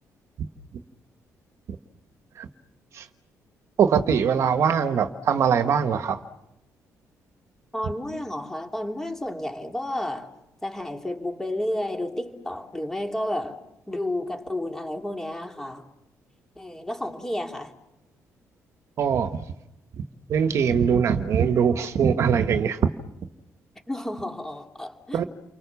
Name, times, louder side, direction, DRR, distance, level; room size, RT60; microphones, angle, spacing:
voice 1, 3.8-6.2 19.0-19.3 20.3-22.8 25.1-25.2, right 7 dB, 55° right, 8 dB, 1.4 m, -22 dB
voice 2, 7.7-10.3 10.6-13.6 13.9-15.8 16.6-17.7 23.9-25.3, left 1 dB, 10° left, 3 dB, 2.8 m, -31 dB
29.5 x 24.0 x 7.1 m, 0.90 s
cardioid pair, 140°, 6 cm